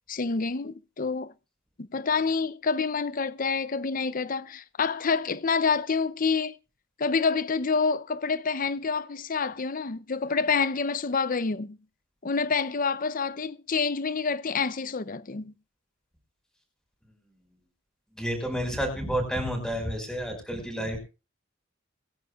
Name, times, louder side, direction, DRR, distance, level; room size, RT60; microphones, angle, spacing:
voice 1, 0.1-1.3 1.8-6.5 7.0-11.8 12.2-15.5, left 5 dB, 45° left, 0.6 m, -27 dB
voice 2, 18.2-21.0, equal, 5° left, 5.5 m, -30 dB
24.5 x 10.5 x 2.4 m
head